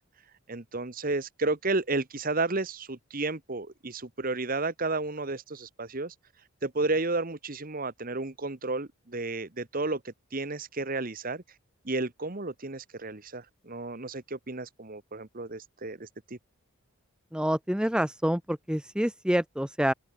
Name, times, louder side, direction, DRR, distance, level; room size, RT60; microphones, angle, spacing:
voice 1, 0.5-6.1 6.6-11.4 11.8-16.4, right 3 dB, 40° right, 1.3 m, -32 dB
voice 2, 17.3-19.9, equal, 5° right, 0.8 m, -27 dB
open air
head